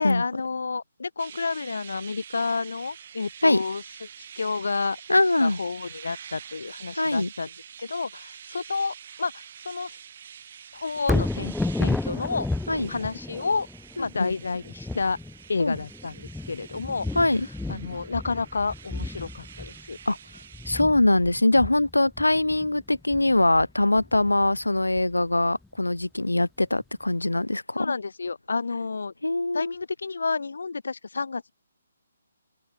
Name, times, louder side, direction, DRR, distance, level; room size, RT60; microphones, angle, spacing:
voice 1, 0.0-3.8 4.2-5.0 5.4-7.5 7.8-10.0 10.7-12.5 12.9-13.7 14.0-15.2 15.5-17.1 17.4-20.0 27.8-29.1 29.5-31.5, left 4 dB, 70° left, 0.4 m, -30 dB
sound 1, 1.2-20.8, right 8 dB, 45° right, 5.0 m, -46 dB
voice 2, 5.1-5.6 6.9-7.3 12.7-12.9 14.0-14.3 15.6-15.8 17.1-17.5 20.1-20.2 20.6-27.9 29.2-29.7, left 2 dB, 90° left, 1.2 m, -22 dB
Thunder, 11.0-25.2 25.6-25.7, left 2 dB, 5° left, 0.4 m, -33 dB
open air
figure-of-eight pair, 140°, 0 cm